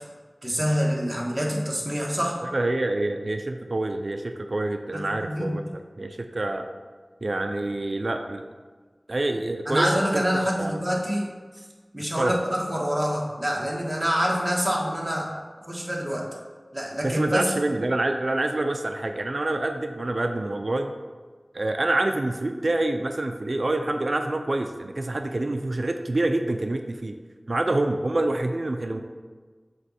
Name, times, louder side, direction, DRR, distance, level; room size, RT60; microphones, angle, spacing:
voice 1, 0.4-2.4 4.9-5.6 9.7-11.3 11.5-11.6 11.9-15.3 15.7-16.3 16.7-17.4, equal, 20° right, -3 dB, 1.4 m, -26 dB
voice 2, 2.5-6.7 7.2-8.4 9.1-9.9 10.1-10.2 10.6-10.8 12.2-12.4 17.0-20.9 21.5-27.2 27.5-29.0, right 2 dB, 70° right, 6 dB, 0.4 m, -27 dB
7.7 x 3.0 x 4.2 m, 1.4 s
wide cardioid pair, 55°, 0 cm